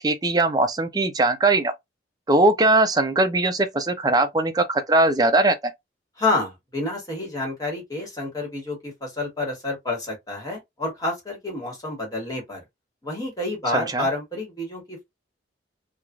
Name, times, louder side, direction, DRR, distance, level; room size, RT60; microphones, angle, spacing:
voice 1, 0.0-1.7 2.3-5.6 13.7-14.1, right 2 dB, 20° right, 0.4 m, -20 dB
voice 2, 6.2-12.6 13.0-15.0, left 2 dB, 20° left, 1.4 m, -29 dB
3.1 x 2.3 x 2.4 m
head